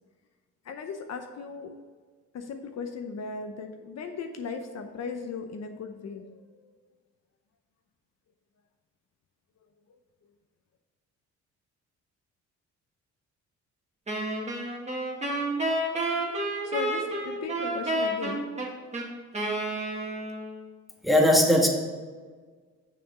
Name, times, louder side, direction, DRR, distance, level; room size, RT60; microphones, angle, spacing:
voice 1, 0.6-1.7 2.3-6.8 16.6-18.5, left 5 dB, 60° left, 5 dB, 0.8 m, -37 dB
Wind instrument woodwind instrument, 14.1-20.6, right 1 dB, 20° right, 2.0 m, -30 dB
voice 2, 21.0-21.7, left 1 dB, ahead, 0 dB, 1.5 m, -19 dB
7.0 x 6.2 x 4.9 m, 1.5 s
cardioid pair, 90°, 30 cm